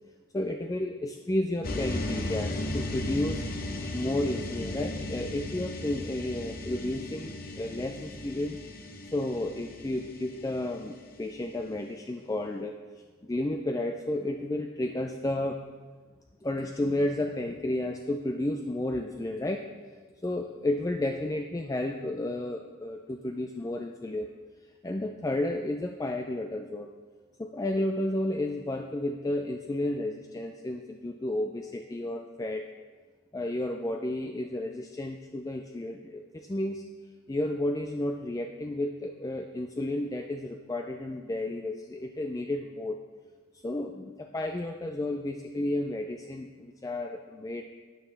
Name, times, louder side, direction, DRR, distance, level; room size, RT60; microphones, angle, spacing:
voice 1, 0.3-3.4 3.9-8.6 9.1-12.7 13.2-15.6 16.4-19.6 20.2-24.3 24.6-26.9 27.4-32.6 33.3-36.8 37.3-43.0 43.6-47.7, left 1 dB, 15° left, 4 dB, 0.3 m, -32 dB
sound 1, 1.6-11.7, left 1 dB, 45° left, 0.8 m, -36 dB
12.5 x 9.2 x 3.3 m, 1.4 s
head